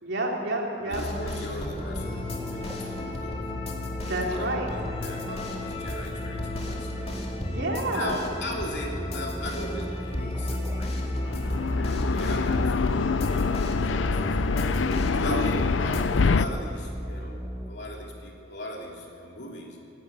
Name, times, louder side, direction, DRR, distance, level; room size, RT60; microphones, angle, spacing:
voice 1, 0.0-1.0 4.0-4.7 7.4-8.2 15.2-15.4, right 2 dB, 65° right, -1 dB, 3.4 m, -29 dB
voice 2, 0.8-3.4 4.1-7.1 7.9-11.3 12.0-14.8 15.1-17.4 17.7-19.8, left 1 dB, 65° left, -1 dB, 3.2 m, -39 dB
sound 1, 0.9-16.0, left 1 dB, 35° left, 2.5 m, -33 dB
sound 2, 1.7-17.7, equal, 15° right, 1.4 m, -37 dB
sound 3, 11.2-16.4, left 4 dB, 80° left, 0.5 m, -25 dB
26.0 x 12.0 x 8.8 m, 2.7 s
head